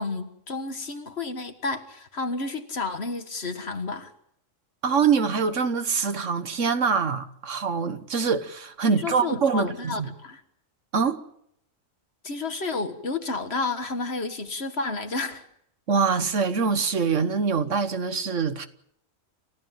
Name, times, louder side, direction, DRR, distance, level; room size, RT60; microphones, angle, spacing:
voice 1, 0.0-4.1 9.0-10.4 12.2-15.4, left 3 dB, 55° left, 1.9 m, -31 dB
voice 2, 4.8-10.1 10.9-11.2 15.9-18.7, right 5 dB, 70° right, 1.6 m, -24 dB
29.0 x 15.5 x 7.5 m
omnidirectional pair, 1.3 m